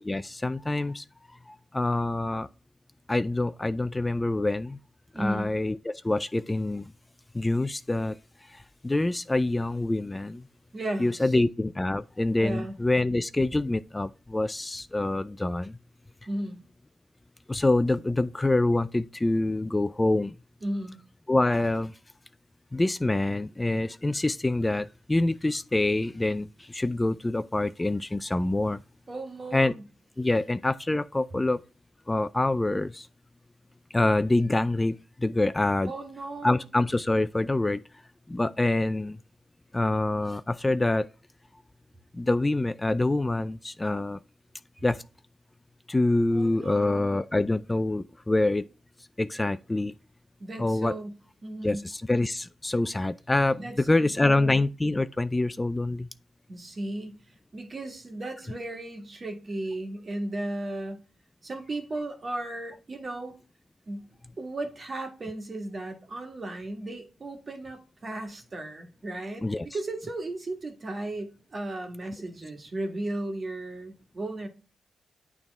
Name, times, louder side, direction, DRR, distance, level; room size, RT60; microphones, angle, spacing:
voice 1, 0.0-1.0 1.5-2.5 3.1-4.8 5.2-6.9 7.3-8.2 8.5-10.4 11.0-15.8 17.5-20.3 21.3-21.9 22.7-28.8 29.5-29.7 30.2-31.6 32.1-33.1 33.9-35.9 36.4-37.8 38.3-39.2 39.7-41.1 42.1-44.2 44.8-45.0 45.9-48.6 49.2-49.9 50.6-50.9 51.6-53.6 53.9-56.1 69.4-69.7, left 2 dB, 20° left, 0.3 m, -26 dB
voice 2, 5.1-5.5 10.7-11.4 12.4-12.8 16.3-16.6 20.6-21.0 29.1-29.8 35.8-36.7 46.3-47.1 50.4-51.9 53.6-54.6 56.5-61.0 61.4-63.4 63.9-64.1 64.4-69.5 69.7-74.5, right 1 dB, 45° right, 1.7 m, -35 dB
8.9 x 3.6 x 3.4 m
supercardioid pair, 50°, 0 cm